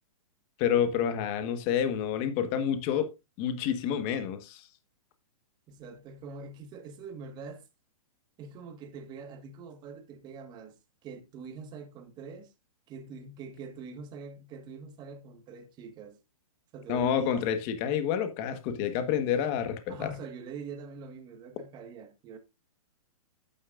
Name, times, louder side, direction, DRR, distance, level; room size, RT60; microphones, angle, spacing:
voice 1, 0.6-4.7 16.9-20.1, left 8 dB, 30° left, 1.4 m, -29 dB
voice 2, 5.7-7.6 8.4-10.8 11.0-12.5 12.9-16.2 16.7-17.5 19.9-22.4, right 5 dB, 20° right, 1.6 m, -44 dB
11.0 x 9.3 x 2.5 m
hypercardioid pair, 150°, 19 cm